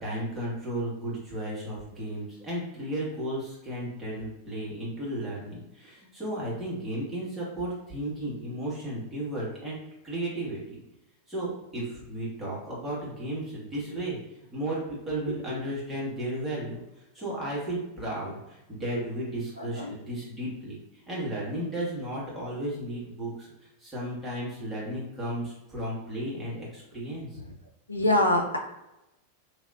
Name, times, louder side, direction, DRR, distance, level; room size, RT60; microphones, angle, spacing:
voice 1, 0.0-9.8 10.0-10.8 11.3-14.2 14.5-16.8 17.1-27.4, right 1 dB, 5° right, -8 dB, 1.4 m, -34 dB
voice 2, 19.5-19.9 27.3-27.5 27.9-28.6, left 1 dB, 85° left, 1 dB, 0.5 m, -27 dB
3.3 x 2.8 x 2.5 m, 0.94 s
figure-of-eight pair, 90°, 0 cm